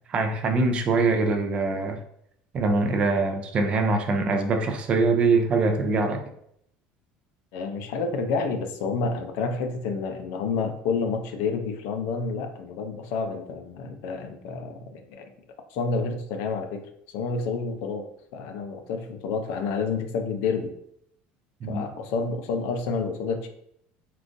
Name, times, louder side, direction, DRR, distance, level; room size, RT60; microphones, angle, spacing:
voice 1, 0.1-2.0 2.5-6.2 21.6-21.8, right 3 dB, 25° right, 6 dB, 0.3 m, -23 dB
voice 2, 7.5-15.3 15.7-16.9 17.1-18.1 18.3-20.7 21.7-23.5, left 4 dB, 65° left, 6 dB, 0.5 m, -29 dB
3.7 x 2.4 x 2.5 m, 0.71 s
cardioid pair, 165°, 4 cm